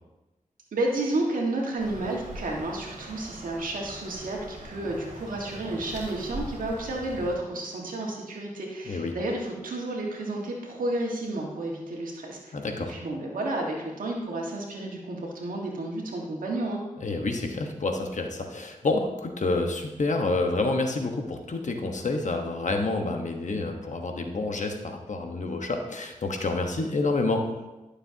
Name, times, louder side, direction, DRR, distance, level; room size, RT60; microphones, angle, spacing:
voice 1, 0.7-12.5 12.9-16.8, right 2 dB, 85° right, -1 dB, 1.7 m, -31 dB
sound 1, 1.8-7.4, right 1 dB, 60° right, 2.1 m, -42 dB
voice 2, 8.9-9.2 12.5-12.9 17.0-27.4, left 3 dB, 60° left, 4 dB, 1.2 m, -28 dB
11.5 x 6.7 x 2.9 m, 1.1 s
cardioid pair, 40°, 14 cm